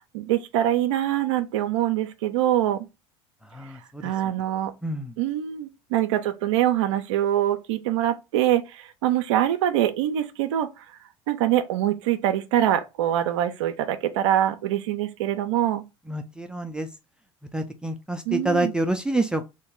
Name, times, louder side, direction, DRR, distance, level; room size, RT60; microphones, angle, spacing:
voice 1, 0.1-2.9 4.0-4.7 5.2-10.8 11.3-15.8 18.3-18.7, right 12 dB, 80° right, 0.5 m, -24 dB
voice 2, 3.5-4.0 4.8-5.1 16.1-16.9 17.5-19.5, right 2 dB, 5° right, 0.5 m, -27 dB
3.0 x 2.6 x 3.6 m
hypercardioid pair, 80°, 15 cm